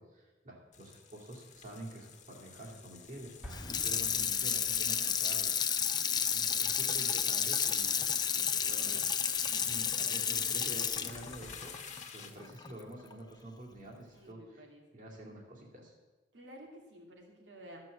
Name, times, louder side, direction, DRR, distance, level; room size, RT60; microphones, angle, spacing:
voice 1, 0.0-5.5 6.1-8.0 8.3-9.0 9.7-11.7 12.1-14.7 14.9-15.9, right 1 dB, 50° right, -2 dB, 2.4 m, -48 dB
sound 1, 0.7-12.6, left 7 dB, 45° left, 1.4 m, -52 dB
Explosion, 3.4-5.2, equal, 10° right, 1.6 m, -49 dB
Water tap faucet / Sink (filling or washing), 3.5-12.7 13.1-13.2, left 7 dB, 25° left, 0.5 m, -31 dB
voice 2, 6.1-6.4 9.5-10.2 14.1-14.8 16.3-17.8, equal, 85° right, 0 dB, 2.6 m, -53 dB
13.5 x 6.2 x 7.9 m, 1.2 s
head